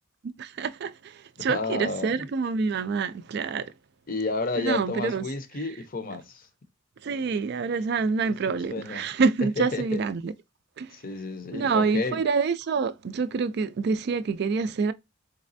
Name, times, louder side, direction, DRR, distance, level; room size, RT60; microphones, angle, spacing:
voice 1, 0.2-3.7 4.6-5.3 7.0-10.3 10.8-10.9 11.5-14.9, right 5 dB, 55° right, 0.3 m, -27 dB
voice 2, 1.4-2.2 4.1-6.4 8.2-8.3 8.7-9.1 9.6-10.0 10.9-12.2, left 3 dB, 45° left, 0.6 m, -31 dB
4.0 x 3.2 x 2.6 m
head